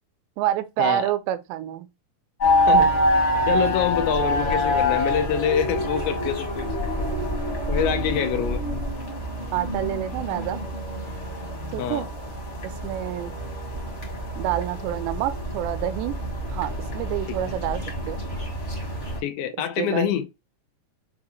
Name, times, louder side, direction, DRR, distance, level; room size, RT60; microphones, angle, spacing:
voice 1, 0.4-1.9 9.5-10.6 11.7-12.1 12.6-13.4 14.4-16.2 16.5-18.2 19.8-20.1, right 13 dB, 85° right, 2.7 m, -28 dB
sound 1, 2.4-19.2, left 1 dB, 40° left, 0.9 m, -26 dB
voice 2, 3.2-6.7 7.7-8.6 11.8-12.1 17.3-17.4 19.2-20.3, left 8 dB, 85° left, 3.0 m, -26 dB
7.0 x 2.5 x 2.9 m
omnidirectional pair, 4.9 m